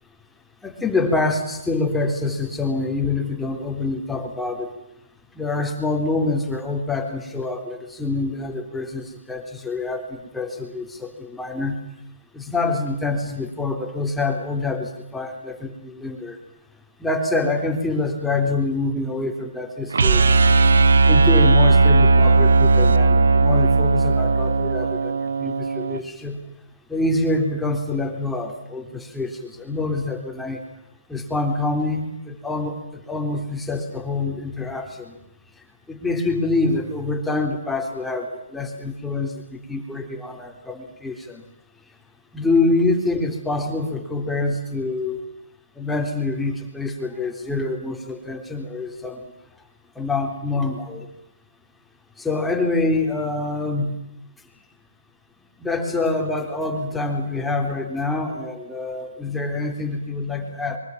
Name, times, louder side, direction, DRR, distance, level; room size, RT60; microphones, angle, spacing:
voice 1, 0.6-4.7 5.4-11.8 12.3-16.4 17.0-20.4 21.1-26.4 26.9-30.6 31.1-35.2 35.9-41.4 42.3-45.2 45.8-49.2 50.0-51.1 52.2-54.0 55.6-60.8, left 3 dB, 5° left, 3 dB, 3.7 m, -26 dB
sound 1, 19.9-26.0, right 3 dB, 75° right, 1.6 m, -16 dB
25.0 x 24.0 x 7.4 m, 0.85 s
hypercardioid pair, 145°, 0 cm